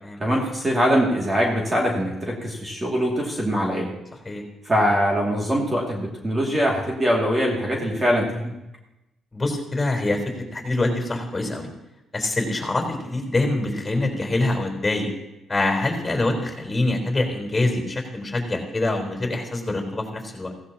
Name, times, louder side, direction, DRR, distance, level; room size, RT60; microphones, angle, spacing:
voice 1, 0.2-3.9 4.6-8.6, equal, 25° right, -2 dB, 2.4 m, -22 dB
voice 2, 9.3-11.7 12.1-15.1 15.5-20.5, left 2 dB, 20° left, 2 dB, 4.2 m, -25 dB
16.0 x 15.5 x 2.9 m, 0.93 s
cardioid pair, 90°, 0 cm